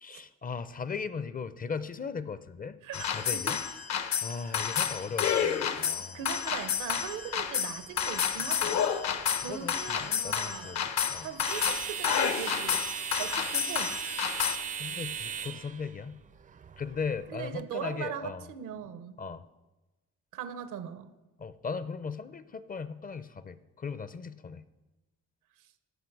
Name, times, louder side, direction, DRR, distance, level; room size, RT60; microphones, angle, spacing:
voice 1, 0.0-3.6 4.2-6.2 9.5-11.3 14.4-16.2 16.8-18.5 19.2-19.4 21.4-24.6, left 5 dB, 30° left, 14 dB, 0.5 m, -38 dB
voice 2, 2.8-3.6 4.2-4.7 6.0-8.9 9.3-10.8 11.2-12.9 13.2-14.0 17.3-19.2 20.3-21.1 25.6-25.7, right 9 dB, 85° right, 12 dB, 0.8 m, -40 dB
sound 1, 2.9-14.6, left 8 dB, 65° left, 0.8 m, -30 dB
sound 2, 6.3-17.6, right 7 dB, 25° right, 0.4 m, -40 dB
16.0 x 5.7 x 4.6 m, 1.1 s
cardioid pair, 90°, 30 cm